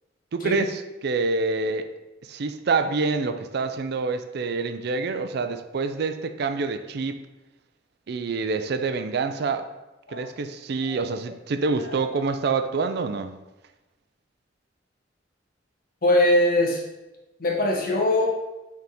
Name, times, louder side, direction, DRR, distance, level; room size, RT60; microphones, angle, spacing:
voice 1, 0.3-1.9 2.3-7.2 8.1-9.7 10.1-13.4, right 4 dB, 60° right, 9 dB, 0.4 m, -27 dB
voice 2, 16.0-16.8 17.4-18.3, left 1 dB, 50° left, -1 dB, 1.0 m, -22 dB
6.4 x 3.5 x 4.2 m, 1.0 s
head